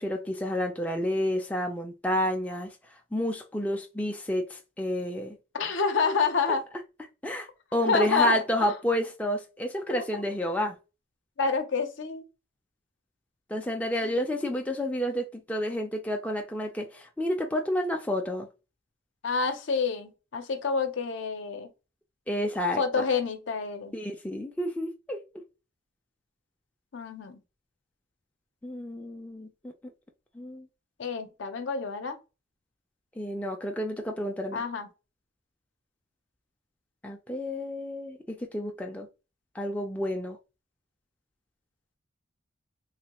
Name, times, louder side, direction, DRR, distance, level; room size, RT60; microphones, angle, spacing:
voice 1, 0.0-2.7 3.1-5.4 7.2-10.8 13.5-18.5 22.3-23.1 23.9-25.2 28.6-29.7 30.3-30.7 33.2-34.6 37.0-39.1 39.5-40.4, equal, 5° left, 0.4 m, -30 dB
voice 2, 5.5-6.6 7.9-8.7 9.9-10.2 11.4-12.2 14.0-14.1 19.2-21.7 22.8-23.9 26.9-27.4 31.0-32.2 34.5-34.9, left 5 dB, 70° left, 0.6 m, -28 dB
3.2 x 2.3 x 2.9 m
head